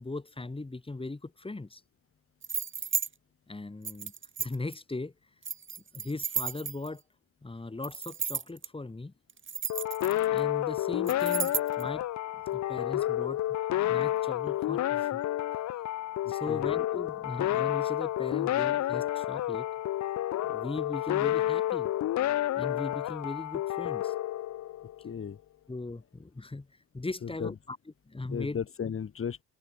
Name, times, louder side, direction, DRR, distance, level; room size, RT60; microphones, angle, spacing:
voice 1, 0.0-1.8 3.5-4.1 4.4-5.1 5.9-7.0 7.4-9.1 10.3-12.1 12.5-13.4 13.9-15.2 16.3-19.7 20.4-21.9 22.6-24.1 25.7-26.7 26.9-27.8 28.1-28.6, left 2 dB, 20° left, 7.9 m, -38 dB
sound 1, 2.4-3.1 3.8-4.7 5.4-7.0 7.8-8.7 9.3-10.4 11.1-11.8, right 6 dB, 40° right, 3.8 m, -33 dB
sound 2, 9.7-25.1, left 13 dB, 65° left, 0.9 m, -30 dB
voice 2, 16.2-16.7 25.0-25.4 27.2-27.5 28.3-29.4, left 7 dB, 45° left, 3.3 m, -35 dB
cardioid pair, 90°, 30 cm